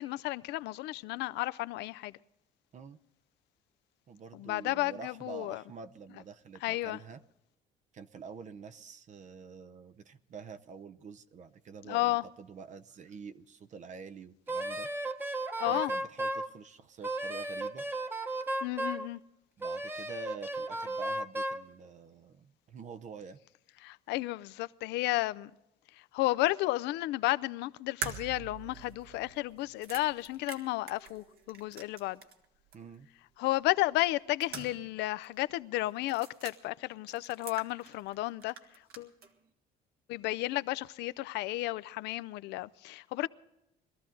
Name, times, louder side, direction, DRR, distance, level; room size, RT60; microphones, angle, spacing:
voice 1, 0.0-2.1 4.4-5.6 6.6-7.0 11.9-12.2 15.6-15.9 18.6-19.2 23.8-25.5 26.1-32.2 33.4-38.5 39.0-39.1 40.1-43.3, left 18 dB, 85° left, 0.5 m, -32 dB
voice 2, 4.1-7.2 7.9-14.9 15.7-17.9 19.6-23.4 32.7-33.1, right 5 dB, 45° right, 0.8 m, -47 dB
Wind instrument woodwind instrument, 14.5-16.5 17.0-19.1 19.6-21.6, right 1 dB, 10° right, 1.1 m, -34 dB
sound 1, 28.0-32.5 32.7-32.8 34.0-35.0 35.2-35.3 36.0-36.6 37.1-38.2 38.4-39.3, right 6 dB, 65° right, 1.8 m, -44 dB
22.0 x 13.5 x 3.8 m
cardioid pair, 110°, 17 cm